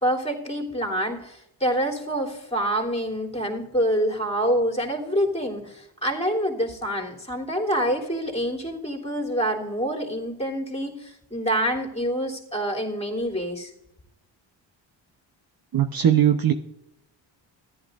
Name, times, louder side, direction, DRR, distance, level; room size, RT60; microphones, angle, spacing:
voice 1, 0.0-13.7, equal, 15° left, -1 dB, 3.2 m, -26 dB
voice 2, 15.7-16.5, right 10 dB, 45° right, 8 dB, 0.9 m, -19 dB
14.0 x 11.0 x 2.5 m, 0.84 s
supercardioid pair, 60°, 48 cm